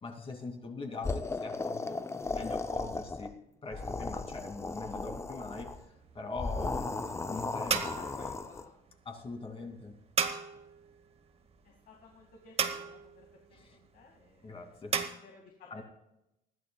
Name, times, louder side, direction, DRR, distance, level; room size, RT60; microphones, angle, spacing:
voice 1, 0.0-2.0 2.3-3.3 3.6-5.8 6.1-6.9 7.3-7.9 9.0-9.9 13.5-13.8 14.4-15.0 15.7-15.8, left 3 dB, 35° left, 3 dB, 2.8 m, -42 dB
sound 1, 1.0-3.3 3.6-5.8 6.3-8.6, left 3 dB, 15° left, 0.6 m, -36 dB
sound 2, 5.4-15.1, right 6 dB, 35° right, 1.3 m, -37 dB
voice 2, 7.9-8.7 11.6-14.7 15.2-15.8, left 4 dB, 60° left, 0 dB, 2.3 m, -55 dB
20.5 x 14.5 x 2.4 m, 0.88 s
cardioid pair, 110°, 17 cm